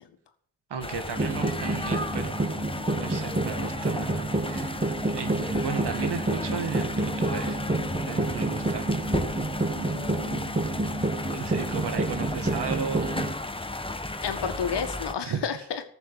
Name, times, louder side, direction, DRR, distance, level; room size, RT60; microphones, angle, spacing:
voice 1, 0.7-2.6 2.9-4.8 5.1-7.6 8.0-8.9 11.3-13.1 15.2-15.4, right 6 dB, 75° right, 7 dB, 2.2 m, -35 dB
sound 1, 0.8-15.1, left 2 dB, 15° left, 1.2 m, -35 dB
sound 2, 1.2-13.3, right 2 dB, 20° right, 1.8 m, -29 dB
voice 2, 9.7-10.5 14.2-15.8, left 7 dB, 80° left, 7 dB, 1.9 m, -32 dB
14.5 x 7.1 x 8.1 m, 0.65 s
cardioid pair, 65°, 41 cm